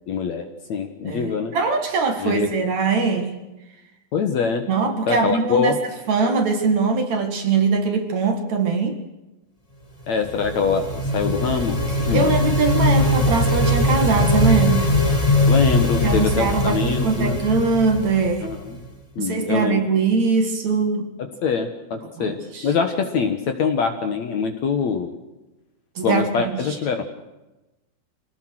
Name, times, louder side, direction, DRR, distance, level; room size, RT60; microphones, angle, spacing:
voice 1, 0.1-1.5 2.2-2.5 4.1-4.7 5.1-5.8 10.1-12.4 15.5-17.4 18.4-18.8 19.2-19.8 21.2-25.1 26.0-27.0, left 5 dB, 55° left, 6 dB, 2.2 m, -24 dB
voice 2, 1.0-3.4 4.7-5.7 6.1-9.0 12.1-15.0 16.0-18.5 19.2-21.1 22.2-22.7 26.0-26.6, right 4 dB, 50° right, 5 dB, 2.9 m, -22 dB
sound 1, 10.1-18.9, left 1 dB, 20° left, 1.0 m, -21 dB
25.5 x 19.0 x 6.5 m, 1.0 s
omnidirectional pair, 4.5 m